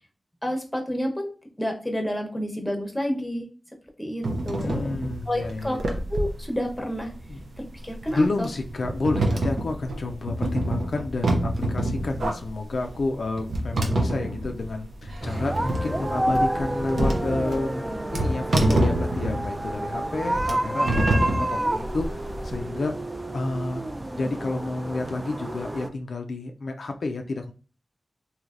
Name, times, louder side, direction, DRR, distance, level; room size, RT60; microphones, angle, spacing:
voice 1, 0.4-1.3 1.6-3.5 4.0-5.0 5.3-7.1 7.8-8.5, equal, 15° left, 3 dB, 0.8 m, -29 dB
sound 1, 4.2-22.5, right 1 dB, 85° right, 0.5 m, -27 dB
voice 2, 4.6-5.8 7.3-7.4 8.1-22.9 23.3-23.8 24.1-27.5, left 3 dB, 80° left, 4 dB, 0.3 m, -30 dB
sound 2, 15.2-25.9, right 1 dB, 25° right, 0.3 m, -29 dB
3.2 x 2.7 x 2.4 m, 0.37 s
cardioid pair, 55°, 0 cm